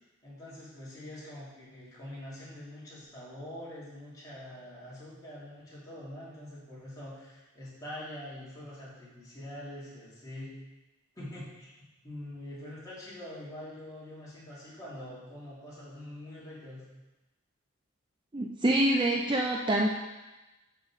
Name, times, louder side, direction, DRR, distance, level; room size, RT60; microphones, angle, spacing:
voice 1, 0.2-10.5 11.1-11.7 12.0-16.8, left 1 dB, 15° left, -9 dB, 3.0 m, -44 dB
voice 2, 18.3-19.9, right 1 dB, 20° right, 0 dB, 0.5 m, -26 dB
6.4 x 5.7 x 6.3 m, 1.1 s
head